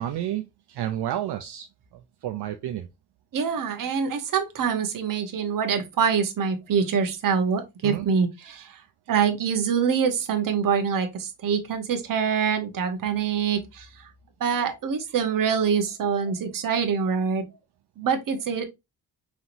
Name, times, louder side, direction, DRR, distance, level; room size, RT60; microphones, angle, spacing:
voice 1, 0.0-2.9 7.8-8.1, right 12 dB, 70° right, 0.6 m, -31 dB
voice 2, 3.3-8.8 9.1-13.9 14.4-17.4 18.0-18.6, right 6 dB, 50° right, 1.0 m, -25 dB
5.7 x 2.9 x 2.6 m
wide cardioid pair, 170°, 41 cm